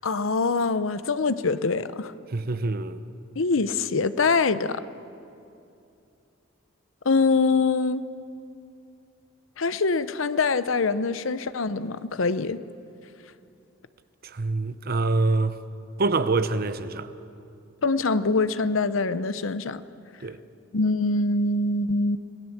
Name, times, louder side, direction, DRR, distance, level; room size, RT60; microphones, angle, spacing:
voice 1, 0.0-2.1 3.4-4.8 7.0-8.0 9.6-12.6 17.8-19.8 20.7-22.2, left 3 dB, 80° left, 0.8 m, -24 dB
voice 2, 2.3-3.0 14.2-15.6 16.0-17.1 20.2-20.4, right 3 dB, 50° right, 0.8 m, -25 dB
26.5 x 17.0 x 7.3 m
head